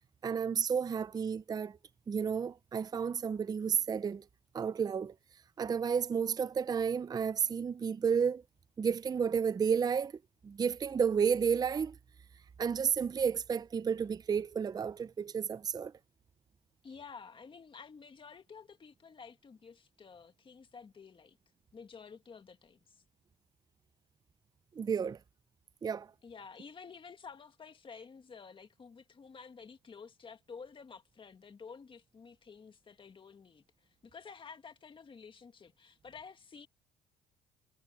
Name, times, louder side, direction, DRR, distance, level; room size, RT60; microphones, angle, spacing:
voice 1, 0.2-1.8 2.1-4.2 4.5-5.1 5.6-8.4 8.8-10.1 10.4-12.0 12.6-15.9 24.8-25.2 25.8-26.1, right 6 dB, 25° right, 0.5 m, -31 dB
voice 2, 16.8-21.4 21.7-23.0 26.2-33.6 34.0-36.7, left 5 dB, 30° left, 1.9 m, -51 dB
cardioid pair, 110°, 17 cm